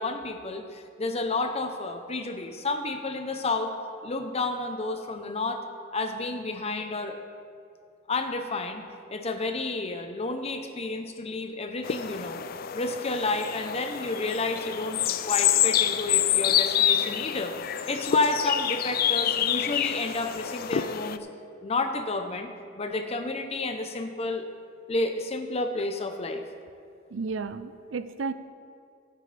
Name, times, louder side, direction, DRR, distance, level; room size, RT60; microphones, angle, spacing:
voice 1, 0.0-3.7 4.0-5.6 5.9-7.2 8.1-8.8 9.1-12.4 12.7-17.5 17.9-21.2 21.6-22.5 22.8-24.4 24.9-26.4, left 3 dB, 30° left, 6 dB, 0.8 m, -30 dB
sound 1, 11.8-21.2, left 10 dB, 50° left, 0.4 m, -27 dB
voice 2, 27.1-28.3, right 4 dB, 80° right, 12 dB, 0.5 m, -32 dB
15.5 x 9.3 x 3.4 m, 2.4 s
head